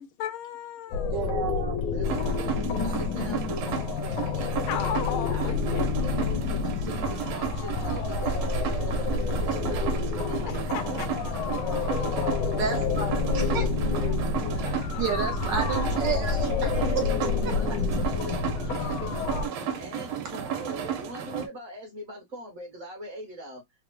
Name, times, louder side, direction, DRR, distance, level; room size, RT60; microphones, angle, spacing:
voice 1, 0.0-1.2 4.7-5.9 10.5-11.1 13.9-14.2 14.6-15.0 19.6-19.8, left 10 dB, 90° left, 1.4 m, -35 dB
sound 1, 0.9-19.5, left 4 dB, 75° left, 1.1 m, -28 dB
voice 2, 1.1-1.8 12.6-13.1 13.5-13.7 15.0-17.8, right 7 dB, 70° right, 1.1 m, -31 dB
voice 3, 1.9-4.6 5.1-10.5 10.8-14.6 15.7-17.0 17.5-19.3 19.8-23.6, equal, 45° right, 1.2 m, -42 dB
sound 2, 2.0-21.5, right 8 dB, 90° right, 1.5 m, -34 dB
3.8 x 2.0 x 2.9 m
omnidirectional pair, 2.3 m